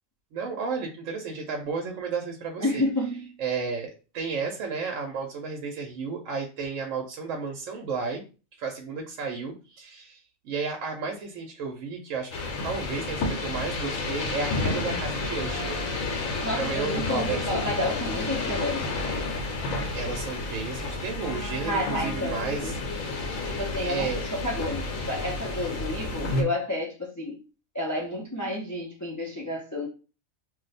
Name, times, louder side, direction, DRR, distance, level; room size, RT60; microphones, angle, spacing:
voice 1, 0.3-2.8 3.4-8.2 8.6-10.2 10.4-15.8 16.6-17.4 19.9-22.7 23.8-24.2, right 5 dB, 75° right, 0.9 m, -32 dB
voice 2, 2.6-3.4 16.4-18.8 21.7-22.8 23.5-27.4 27.7-29.9, left 1 dB, 30° left, 0.3 m, -30 dB
sound 1, 12.3-26.4, left 3 dB, 80° left, 1.1 m, -31 dB
2.5 x 2.1 x 4.0 m
omnidirectional pair, 1.4 m